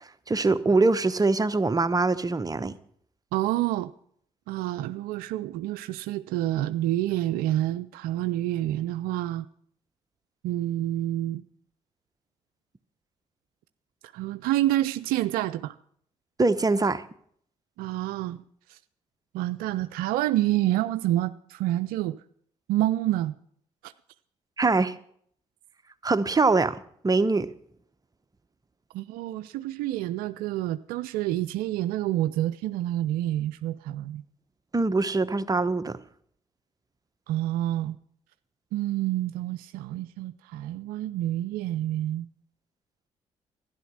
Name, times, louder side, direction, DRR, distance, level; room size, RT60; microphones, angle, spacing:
voice 1, 0.3-2.8 16.4-17.0 24.6-25.0 26.0-27.5 34.7-36.0, right 3 dB, 25° right, 1.0 m, -23 dB
voice 2, 3.3-3.9 4.5-9.5 10.4-11.4 14.1-15.8 17.8-18.4 18.7-18.8 19.3-22.2 22.7-23.3 23.8-23.9 28.9-34.2 37.3-38.0 38.7-42.3, right 14 dB, 80° right, 0.4 m, -28 dB
12.0 x 11.0 x 6.4 m
hypercardioid pair, 45°, 15 cm